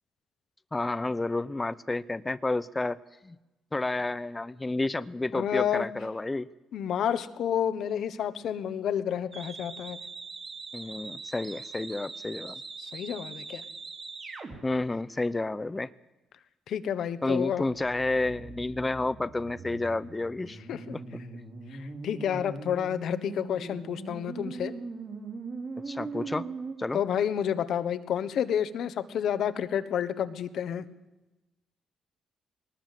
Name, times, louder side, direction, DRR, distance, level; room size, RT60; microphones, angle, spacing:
voice 1, 0.7-3.0 3.2-3.4 3.7-6.5 10.7-12.6 14.6-15.9 17.2-20.6 20.9-21.0 25.9-26.5 26.8-27.0, left 2 dB, 20° left, 14 dB, 0.6 m, -30 dB
voice 2, 5.3-5.9 6.7-10.0 12.8-13.6 16.7-17.7 20.7-20.9 21.7-24.7 26.9-30.8, left 9 dB, 70° left, 12 dB, 1.3 m, -30 dB
sound 1, 9.3-14.6 17.7-26.8, right 4 dB, 45° right, 4.5 m, -41 dB
20.0 x 19.5 x 7.7 m, 1.0 s
cardioid pair, 90°, 0 cm